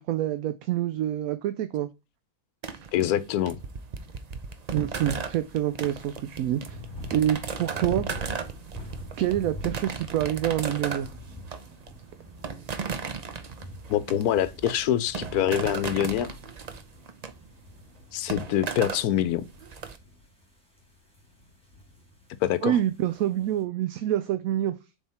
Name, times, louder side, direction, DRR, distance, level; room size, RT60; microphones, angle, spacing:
voice 1, 0.0-1.9 4.7-6.8 7.1-8.1 9.2-11.1 22.6-24.7, right 12 dB, 75° right, 1.0 m, -27 dB
sound 1, 2.6-20.0, right 5 dB, 50° right, 0.5 m, -36 dB
voice 2, 2.9-3.6 13.9-16.3 18.1-19.4 22.4-22.8, left 11 dB, 85° left, 1.1 m, -25 dB
sound 2, 6.7-23.6, left 1 dB, 5° left, 2.0 m, -45 dB
7.2 x 3.7 x 4.2 m
omnidirectional pair, 1.5 m